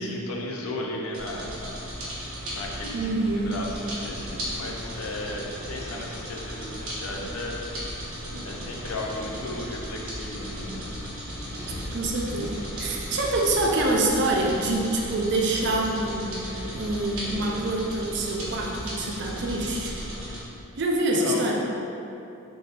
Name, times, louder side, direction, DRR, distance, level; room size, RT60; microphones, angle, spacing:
voice 1, 0.0-1.8 2.5-7.6 8.4-10.8 21.1-21.4, left 1 dB, 85° left, -1 dB, 0.6 m, -35 dB
sound 1, 1.1-20.4, equal, 90° right, 1.3 m, -36 dB
voice 2, 2.9-3.6 11.9-16.4 16.7-19.9 20.8-21.5, right 2 dB, 55° right, -1 dB, 0.5 m, -26 dB
sound 2, 4.0-17.6, left 1 dB, 65° left, 1.2 m, -42 dB
3.7 x 2.7 x 3.9 m, 2.8 s
head